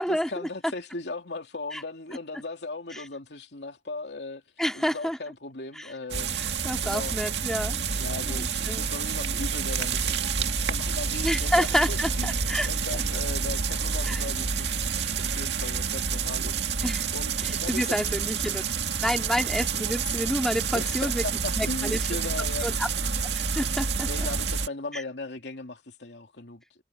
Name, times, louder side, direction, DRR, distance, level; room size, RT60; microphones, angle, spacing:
voice 1, 0.0-4.4 4.7-6.4 6.8-7.1 8.0-16.6 17.1-18.0 20.7-22.7 24.0-26.8, left 2 dB, 80° left, 2.9 m, -38 dB
voice 2, 4.6-5.2 5.8-5.9 6.6-7.8 8.3-8.8 11.2-12.7 14.1-14.2 16.8-17.1 17.7-18.6 19.0-21.2 21.6-22.0 22.6-22.9 23.4-24.1 24.9-25.0, equal, 5° left, 2.6 m, -28 dB
sound 1, 6.1-24.7, right 5 dB, 85° right, 2.0 m, -28 dB
head